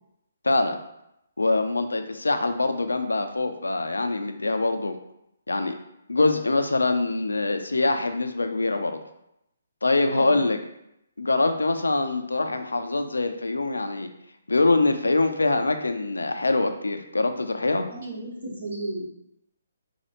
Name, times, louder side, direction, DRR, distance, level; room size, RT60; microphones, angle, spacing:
voice 1, 0.4-0.8 1.4-5.0 5.5-5.8 6.1-9.0 9.8-10.6 11.2-14.1 14.5-17.9, left 2 dB, 80° left, 7 dB, 0.4 m, -24 dB
voice 2, 10.1-10.5 17.9-19.0, right 2 dB, 60° right, -3 dB, 1.2 m, -34 dB
4.2 x 2.3 x 2.9 m, 0.80 s
figure-of-eight pair, 140°, 0 cm